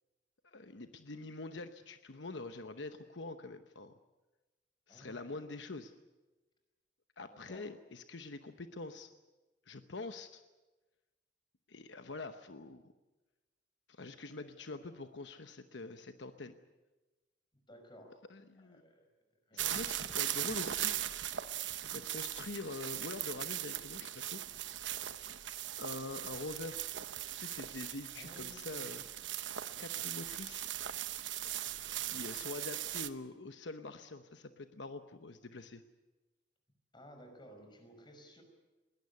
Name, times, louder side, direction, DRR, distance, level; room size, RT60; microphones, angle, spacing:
voice 1, 0.4-3.9 4.9-5.9 7.2-9.1 9.7-10.4 11.7-12.9 13.9-16.5 18.3-18.8 19.5-21.0 21.9-24.4 25.8-26.9 27.4-29.0 29.8-30.7 32.0-35.8, left 3 dB, 75° left, 8 dB, 1.0 m, -45 dB
voice 2, 4.9-5.4 7.3-7.7 17.7-18.2 18.6-19.1 19.5-19.6 28.2-29.3 31.7-32.3 36.9-38.4, equal, 25° left, 5 dB, 5.3 m, -56 dB
sound 1, 19.6-33.1, right 12 dB, 85° right, 1.0 m, -39 dB
21.5 x 17.5 x 9.6 m, 1.2 s
head